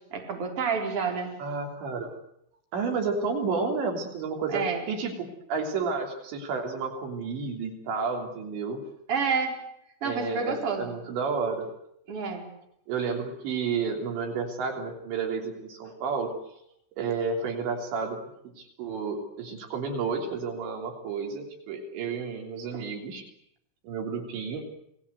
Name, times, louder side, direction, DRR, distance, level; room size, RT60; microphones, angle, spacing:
voice 1, 0.1-1.3 4.5-4.8 9.1-9.5 10.0-10.9 12.1-12.4 22.7-22.9, right 5 dB, 30° right, 2 dB, 4.7 m, -29 dB
voice 2, 1.4-2.1 2.7-8.8 10.0-11.7 12.9-16.3 16.9-18.2 18.8-23.2 23.8-24.6, right 5 dB, 75° right, 3 dB, 5.3 m, -31 dB
29.0 x 19.5 x 8.0 m, 0.76 s
omnidirectional pair, 5.2 m